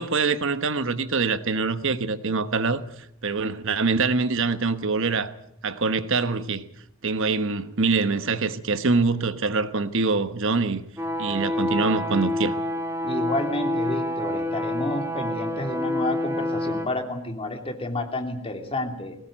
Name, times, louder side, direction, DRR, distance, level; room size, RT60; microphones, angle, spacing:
voice 1, 0.0-2.8 3.2-5.3 5.6-6.6 7.0-10.8 11.2-12.6, right 4 dB, 60° right, 1.2 m, -24 dB
sound 1, 11.0-16.9, left 1 dB, 10° right, 2.0 m, -27 dB
voice 2, 13.0-19.2, left 1 dB, 25° left, 3.0 m, -30 dB
21.5 x 18.5 x 9.0 m
head